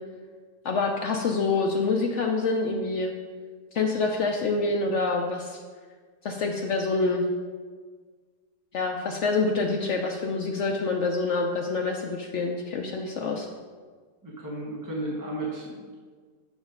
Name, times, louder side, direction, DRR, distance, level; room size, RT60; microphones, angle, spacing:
voice 1, 0.6-3.1 3.7-5.6 6.2-7.2 8.7-13.5, left 3 dB, 75° left, 2 dB, 0.6 m, -26 dB
voice 2, 14.2-15.9, right 1 dB, 15° right, -4 dB, 0.8 m, -34 dB
6.5 x 5.1 x 4.9 m, 1.5 s
omnidirectional pair, 1.8 m